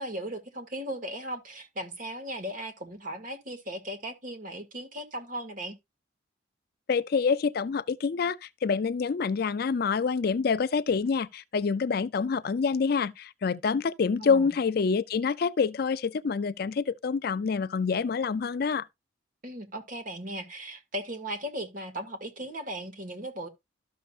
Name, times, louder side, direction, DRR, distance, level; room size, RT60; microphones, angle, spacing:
voice 1, 0.0-5.8 14.2-14.5 19.4-23.5, right 1 dB, 45° right, 1.9 m, -37 dB
voice 2, 6.9-18.9, left 5 dB, 50° left, 0.4 m, -27 dB
13.0 x 6.5 x 2.4 m
head